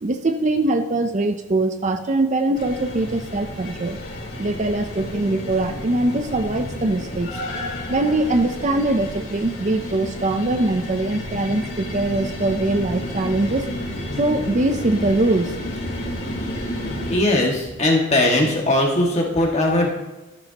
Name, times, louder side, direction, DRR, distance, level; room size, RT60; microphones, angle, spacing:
voice 1, 0.0-4.0 4.4-7.4 7.9-13.7 14.2-15.5, right 2 dB, 35° right, 8 dB, 0.6 m, -22 dB
sound 1, 2.5-17.2, left 1 dB, 55° left, 3.9 m, -31 dB
voice 2, 17.1-19.9, left 1 dB, 30° left, -1 dB, 2.0 m, -19 dB
14.0 x 11.5 x 2.9 m, 1.1 s
head